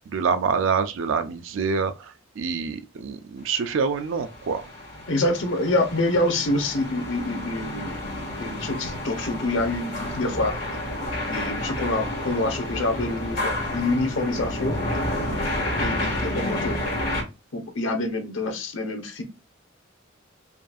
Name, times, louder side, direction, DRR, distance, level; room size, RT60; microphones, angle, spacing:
voice 1, 0.0-4.7 15.2-15.4, right 5 dB, 90° right, 0.4 m, -26 dB
sound 1, 4.0-17.2, left 1 dB, 55° left, 1.8 m, -30 dB
voice 2, 5.1-10.5 11.3-14.7 15.8-16.9 17.5-19.2, left 2 dB, 80° left, 1.0 m, -26 dB
5.1 x 2.6 x 2.3 m
head